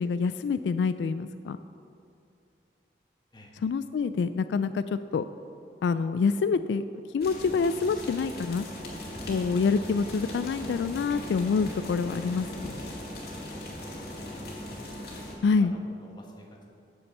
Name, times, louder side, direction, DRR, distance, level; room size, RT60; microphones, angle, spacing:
voice 1, 0.0-1.6 3.6-5.2 5.8-6.8 7.1-8.7 9.3-12.7 15.4-15.7, left 5 dB, 80° left, 12 dB, 0.3 m, -26 dB
sound 1, 7.2-15.3, left 1 dB, 60° left, 2.1 m, -40 dB
sound 2, 8.6-14.8, equal, 5° right, 1.4 m, -44 dB
voice 2, 13.6-14.8 15.1-16.7, equal, 25° left, -1 dB, 1.4 m, -49 dB
8.5 x 7.0 x 7.2 m, 2.6 s
head